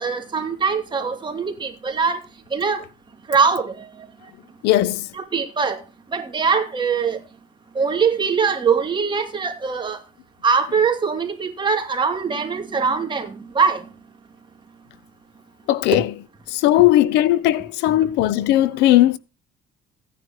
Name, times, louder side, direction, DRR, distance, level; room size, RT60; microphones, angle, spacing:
voice 1, 0.0-2.2 2.5-2.8 3.3-3.9 5.1-5.8 6.1-7.2 7.7-10.0 10.4-13.8, right 5 dB, 30° right, 2.8 m, -22 dB
voice 2, 4.6-5.1 15.7-16.1 16.5-19.2, left 14 dB, 90° left, 0.7 m, -17 dB
16.0 x 9.9 x 3.0 m
cardioid pair, 110°, 17 cm